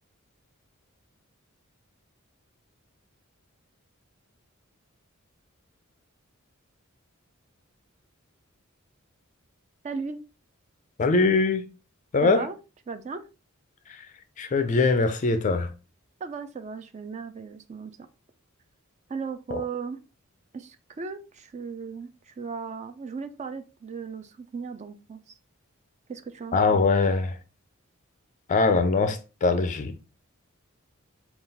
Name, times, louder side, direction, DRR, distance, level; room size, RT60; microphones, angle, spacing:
voice 1, 9.8-10.2 12.2-12.5 12.9-13.3 16.2-17.9 19.1-20.0 20.5-25.3 26.1-26.8, right 5 dB, 35° right, 0.4 m, -36 dB
voice 2, 11.0-11.7 12.1-12.4 14.4-15.7 19.5-19.6 26.5-27.4 28.5-30.0, left 3 dB, 35° left, 0.4 m, -22 dB
3.8 x 2.3 x 4.0 m
head